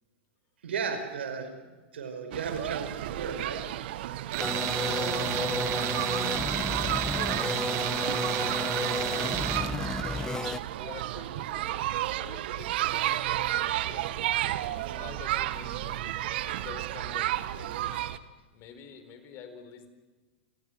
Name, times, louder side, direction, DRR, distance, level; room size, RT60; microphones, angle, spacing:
voice 1, 0.6-3.6, right 6 dB, 85° right, 7 dB, 5.3 m, -35 dB
sound 1, 2.3-18.2, right 14 dB, 65° right, 1.4 m, -33 dB
Tools, 4.3-9.7, right 14 dB, 45° right, 2.0 m, -31 dB
sound 2, 4.4-10.6, left 3 dB, 10° left, 1.1 m, -33 dB
voice 2, 4.8-10.3 10.7-14.1 14.7-16.1 16.6-18.0 18.5-19.9, left 7 dB, 40° left, 9 dB, 4.3 m, -46 dB
29.5 x 19.0 x 6.3 m, 1.3 s
hypercardioid pair, 115°, 6 cm